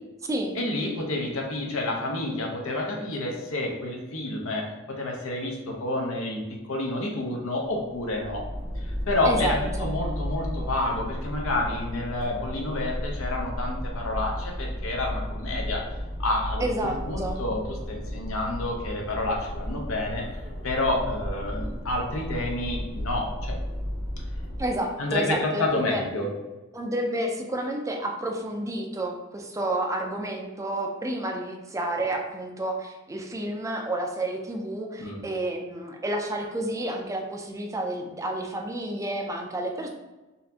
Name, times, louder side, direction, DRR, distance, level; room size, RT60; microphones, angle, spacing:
voice 1, 0.6-8.4 8.8-15.8 16.2-20.3 20.6-23.6 25.0-26.3 35.0-35.2, left 2 dB, 65° left, 0 dB, 0.7 m, -29 dB
sound 1, 7.7-24.9, equal, 30° left, 0.6 m, -34 dB
voice 2, 9.2-9.9 16.6-17.4 24.6-26.0 26.7-39.9, right 1 dB, 15° right, 2 dB, 0.4 m, -30 dB
4.0 x 2.6 x 2.8 m, 1.1 s
head